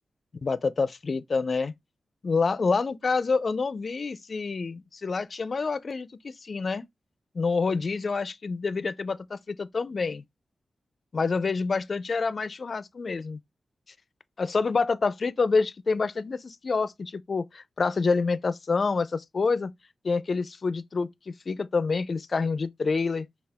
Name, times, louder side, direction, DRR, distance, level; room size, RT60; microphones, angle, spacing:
voice 1, 0.4-1.7 2.2-6.8 7.3-10.2 11.1-13.4 14.4-19.7 20.0-23.3, left 4 dB, 50° left, 0.4 m, -27 dB
5.6 x 2.3 x 3.4 m
cardioid pair, 75°, 0 cm